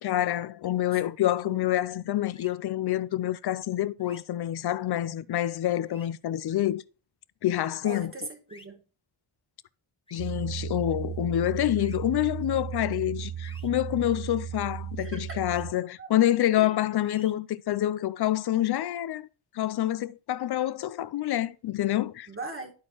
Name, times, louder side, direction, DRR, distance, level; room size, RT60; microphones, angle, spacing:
voice 1, 0.0-6.8 7.4-8.1 10.1-19.3 19.5-22.3, left 13 dB, 50° left, 0.5 m, -27 dB
sound 1, 2.3-2.5 4.0-4.2 5.8-6.1 8.5-8.7 10.1-10.3 11.8-12.0 13.4-13.7 15.4-15.6 17.0-17.3, left 2 dB, 10° left, 1.1 m, -52 dB
voice 2, 7.8-8.8 15.0-15.4 16.0-16.1 16.6-16.7 22.3-22.7, right 3 dB, 25° right, 1.6 m, -39 dB
sound 2, 10.2-15.7, right 9 dB, 45° right, 0.5 m, -35 dB
12.0 x 4.3 x 3.0 m
cardioid pair, 85°, 50 cm